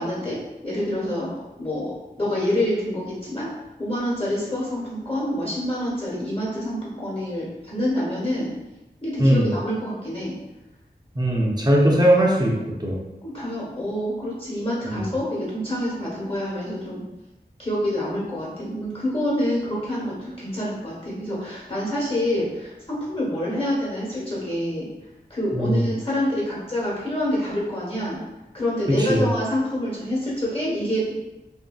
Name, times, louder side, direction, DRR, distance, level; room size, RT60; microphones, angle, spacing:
voice 1, 0.0-1.9 2.2-3.5 3.8-8.5 9.0-10.3 13.2-17.0 17.6-24.9 25.3-28.2 28.5-31.2, left 1 dB, 30° left, -6 dB, 1.2 m, -27 dB
voice 2, 9.2-9.5 11.1-12.5 12.8-13.0 14.9-15.0 25.5-25.8 29.1-29.2, right 1 dB, 25° right, -2 dB, 0.6 m, -19 dB
2.7 x 2.6 x 2.3 m, 1.0 s
wide cardioid pair, 50°, 18 cm